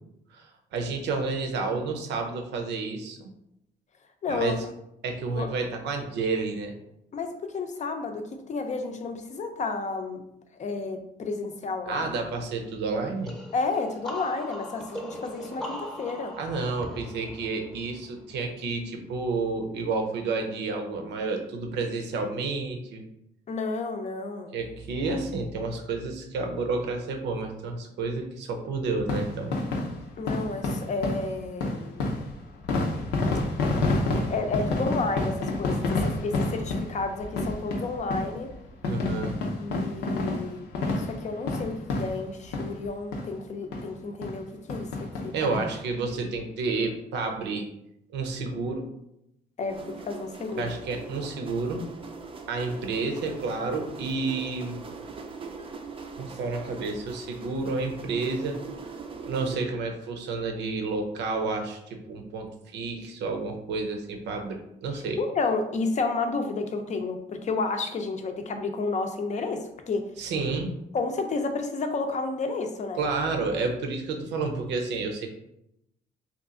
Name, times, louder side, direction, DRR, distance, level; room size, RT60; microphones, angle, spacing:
voice 1, 0.3-3.3 4.3-4.7 5.0-6.7 11.8-13.3 16.4-23.0 24.5-29.6 38.8-39.4 45.3-47.7 48.1-48.9 50.5-51.8 52.5-54.8 56.2-58.6 59.2-65.2 70.2-70.7 73.0-75.3, right 3 dB, 75° right, 4 dB, 0.7 m, -30 dB
voice 2, 4.2-4.5 5.4-5.5 7.1-10.2 10.6-12.1 13.5-16.3 23.5-24.6 30.2-32.0 34.3-38.5 39.6-40.6 40.9-45.6 49.6-50.7 65.2-70.0 70.9-73.0, left 3 dB, 40° left, 6 dB, 0.6 m, -31 dB
sound 1, 13.2-18.8, equal, ahead, 0.8 m, -40 dB
sound 2, 29.0-42.9 43.1-43.3 43.7-43.8 44.2-44.4 44.7-45.7 46.1-46.2 46.3-46.4, left 2 dB, 90° left, 0.6 m, -29 dB
sound 3, 49.7-59.6, right 4 dB, 30° right, 0.4 m, -41 dB
2.9 x 2.4 x 3.6 m, 0.81 s
cardioid pair, 85°, 18 cm